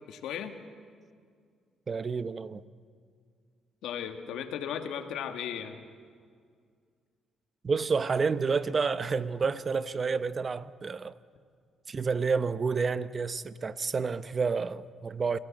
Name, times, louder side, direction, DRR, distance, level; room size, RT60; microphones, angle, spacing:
voice 1, 0.1-0.5 3.8-5.8, left 8 dB, 85° left, 1.8 m, -36 dB
voice 2, 1.9-2.6 7.6-11.2 11.9-15.4, right 5 dB, 35° right, 0.8 m, -29 dB
28.5 x 17.5 x 7.5 m
cardioid pair, 90°, 0 cm